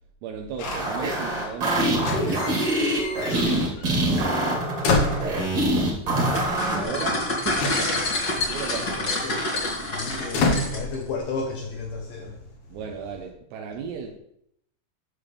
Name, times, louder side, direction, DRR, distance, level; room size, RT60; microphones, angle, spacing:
voice 1, 0.2-2.4 4.2-4.5 5.8-7.7 8.5-9.1 12.7-14.2, right 6 dB, 80° right, 0 dB, 2.8 m, -36 dB
sound 1, 0.6-1.6 1.9-3.9 4.2-5.8 6.8-6.9 7.1-11.5 11.8-12.3, left 3 dB, 65° left, 1.9 m, -30 dB
sound 2, 0.6-6.8, right 1 dB, 45° right, 2.4 m, -24 dB
voice 2, 3.3-3.6 8.8-9.4 9.8-12.8, left 4 dB, 85° left, 2 dB, 1.9 m, -34 dB
sound 3, 6.3-11.0, left 2 dB, 45° left, 1.3 m, -27 dB
11.5 x 6.9 x 3.3 m, 0.74 s
omnidirectional pair, 5.1 m